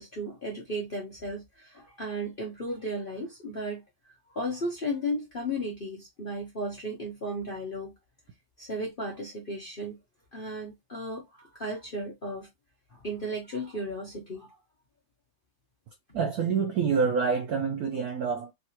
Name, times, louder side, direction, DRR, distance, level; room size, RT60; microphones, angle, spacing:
voice 1, 0.0-3.8 4.3-7.9 8.6-10.0 10.3-12.5 12.9-14.6, equal, 45° left, 0.7 m, -35 dB
voice 2, 16.1-18.5, right 5 dB, 85° right, 0.8 m, -27 dB
3.7 x 2.6 x 2.8 m
omnidirectional pair, 2.3 m